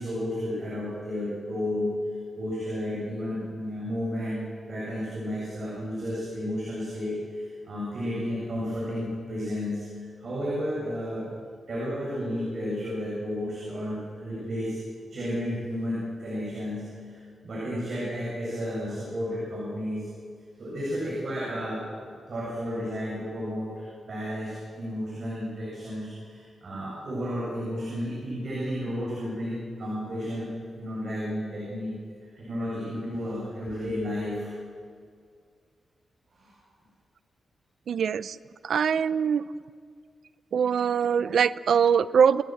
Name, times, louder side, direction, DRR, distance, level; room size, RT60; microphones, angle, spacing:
voice 1, 0.0-1.9 2.3-11.4 11.7-14.8 15.1-20.1 20.6-30.5 30.8-32.0 32.4-34.5 36.3-36.5, equal, 45° right, -6 dB, 7.9 m, -32 dB
voice 2, 37.9-38.4 38.6-39.4 40.5-42.4, right 7 dB, 65° right, 15 dB, 0.6 m, -22 dB
29.5 x 18.5 x 8.0 m, 2.1 s
wide cardioid pair, 180°, 0 cm